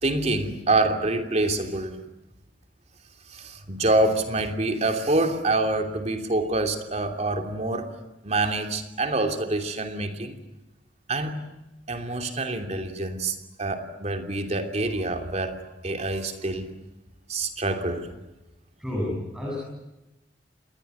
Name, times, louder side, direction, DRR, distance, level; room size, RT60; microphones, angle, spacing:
voice 1, 0.0-1.9 3.3-7.9 8.2-10.4 11.1-11.4 11.9-16.7 17.3-18.1, right 2 dB, 40° right, 5 dB, 3.0 m, -26 dB
voice 2, 18.8-19.6, left 1 dB, 5° right, -4 dB, 7.2 m, -30 dB
28.0 x 21.0 x 9.4 m, 0.98 s
head